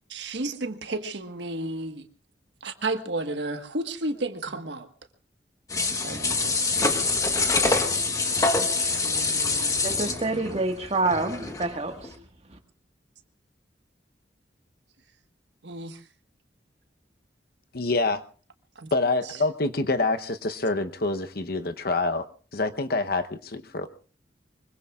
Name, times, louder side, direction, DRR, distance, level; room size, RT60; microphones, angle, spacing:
voice 1, 0.1-2.1 2.6-4.9 6.0-8.0 8.8-9.8 10.3-10.4 15.6-16.0 18.7-18.9 19.2-19.4, right 2 dB, 75° right, 1.5 m, -33 dB
sound 1, 5.7-11.7 12.0-12.1, left 3 dB, 20° left, 1.3 m, -25 dB
voice 2, 9.8-12.1, right 2 dB, 35° right, 1.7 m, -27 dB
voice 3, 17.7-18.2 18.9-22.2 22.5-23.9, left 2 dB, 55° left, 1.0 m, -26 dB
24.0 x 22.5 x 2.5 m
head